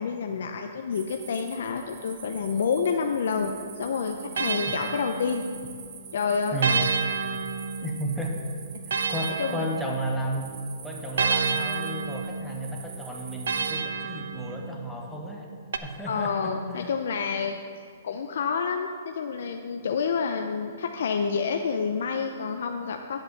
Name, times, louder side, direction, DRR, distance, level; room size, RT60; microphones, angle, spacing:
voice 1, 0.0-3.5 3.8-5.4 6.1-6.8 9.4-9.7 16.1-17.6 18.0-23.2, left 5 dB, 70° left, 4 dB, 0.6 m, -28 dB
sound 1, 0.9-13.7, right 7 dB, 45° right, 1.1 m, -46 dB
sound 2, 3.4-5.8 6.6-10.4 11.2-14.9 15.7-15.8, right 5 dB, 80° right, 0.6 m, -31 dB
voice 2, 6.5-6.8 7.8-8.4 8.9-10.5 10.8-15.5 15.8-16.9, right 1 dB, ahead, -1 dB, 1.0 m, -33 dB
10.5 x 5.5 x 7.1 m, 2.2 s
hypercardioid pair, 155°, 0 cm